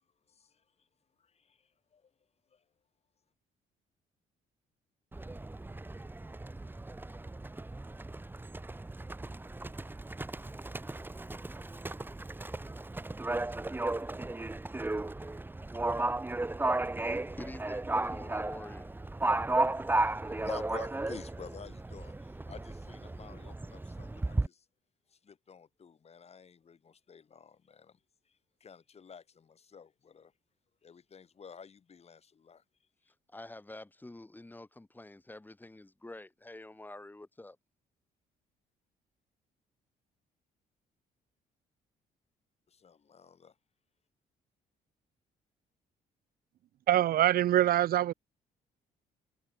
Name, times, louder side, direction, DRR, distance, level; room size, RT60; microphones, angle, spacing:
voice 1, 0.3-0.9 1.2-2.1 2.5-2.6 20.0-24.7 25.1-28.0 28.2-30.3 30.8-32.6 42.7-43.6, left 6 dB, 40° left, 6.0 m, -51 dB
Livestock farm animals working animals, 5.1-24.5, right 2 dB, 10° right, 1.6 m, -35 dB
voice 2, 16.8-19.0 33.3-37.6, left 2 dB, 10° left, 3.3 m, -48 dB
voice 3, 46.9-48.1, right 12 dB, 70° right, 1.2 m, -24 dB
cardioid pair, 100°, 16 cm